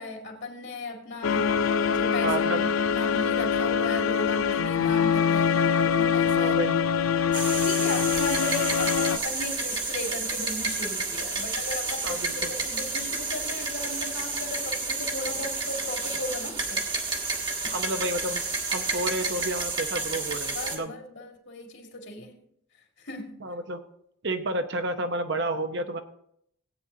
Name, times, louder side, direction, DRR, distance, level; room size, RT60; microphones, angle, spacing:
voice 1, 0.0-6.6 7.3-16.9 17.6-17.8 20.5-22.4 23.0-23.4, left 2 dB, 55° left, 1 dB, 2.1 m, -36 dB
sound 1, 1.2-9.2, left 7 dB, 75° left, 0.5 m, -24 dB
voice 2, 2.2-2.6 4.8-5.0 6.4-6.8 12.0-12.5 17.7-18.4 18.7-20.9 23.4-23.8 24.2-26.0, right 1 dB, 55° right, 7 dB, 0.9 m, -30 dB
sound 2, 7.3-20.8, right 3 dB, 20° right, 1.3 m, -30 dB
17.5 x 8.8 x 2.8 m, 0.71 s
head